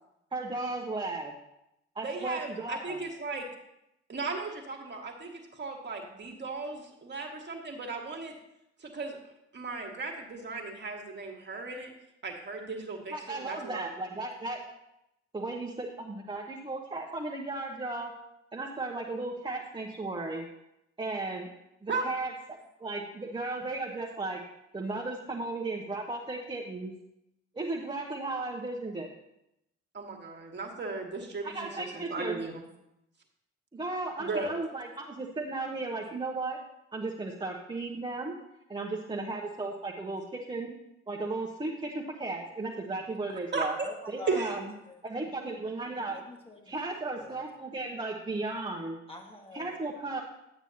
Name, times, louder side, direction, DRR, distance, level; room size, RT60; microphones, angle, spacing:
voice 1, 0.3-1.3 1.9-3.0 13.1-14.6 15.3-18.1 18.5-20.5 21.0-21.5 21.8-24.4 24.7-26.9 27.5-29.1 31.4-32.4 33.7-36.6 36.9-38.3 38.7-40.2 40.5-40.7 41.1-43.8 44.1-44.6 45.0-46.1 46.7-49.0 49.5-50.2, right 2 dB, 15° right, -1 dB, 1.2 m, -35 dB
voice 2, 2.0-3.5 4.1-8.3 8.8-9.2 9.5-11.9 12.2-13.9 21.9-22.1 29.9-32.6 34.2-34.5 43.5-43.9 44.3-44.5, right 3 dB, 30° right, 1 dB, 1.9 m, -36 dB
voice 3, 43.8-45.0 46.1-46.8 47.2-47.4 49.1-49.8, left 2 dB, 15° left, 1 dB, 1.8 m, -45 dB
11.0 x 8.9 x 2.9 m, 0.85 s
figure-of-eight pair, 50°, 33 cm